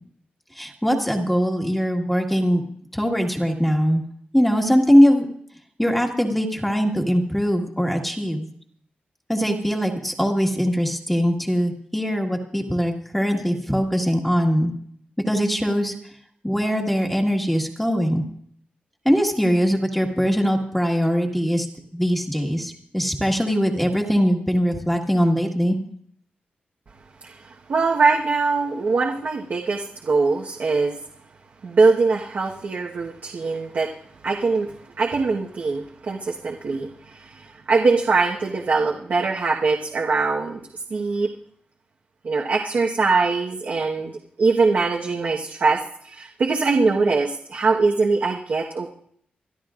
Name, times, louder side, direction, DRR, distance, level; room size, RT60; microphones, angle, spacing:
voice 1, 0.5-2.6 2.9-4.0 4.3-5.2 5.8-8.5 9.3-14.7 15.3-15.9 16.4-18.2 19.0-21.7 21.9-25.8, equal, 5° left, 1 dB, 1.7 m, -21 dB
voice 2, 27.2-31.0 31.6-33.9 34.2-40.6 40.9-41.3 42.2-48.9, right 4 dB, 60° right, -1 dB, 1.3 m, -22 dB
26.5 x 12.5 x 2.5 m, 0.64 s
wide cardioid pair, 120°, 3 cm